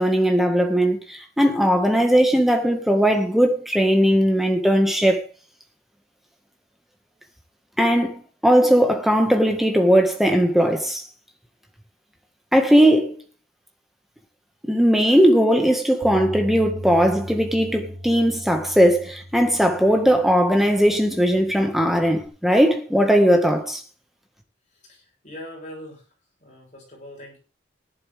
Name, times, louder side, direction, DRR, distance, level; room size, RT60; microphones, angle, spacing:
voice 1, 0.0-5.2 7.8-11.0 12.5-13.2 14.7-23.8, equal, ahead, 1.8 m, -18 dB
Bass guitar, 16.0-22.3, equal, 75° right, 3.7 m, -38 dB
voice 2, 24.7-26.0 26.4-27.4, left 1 dB, 40° left, 7.1 m, -41 dB
16.0 x 11.0 x 3.6 m
head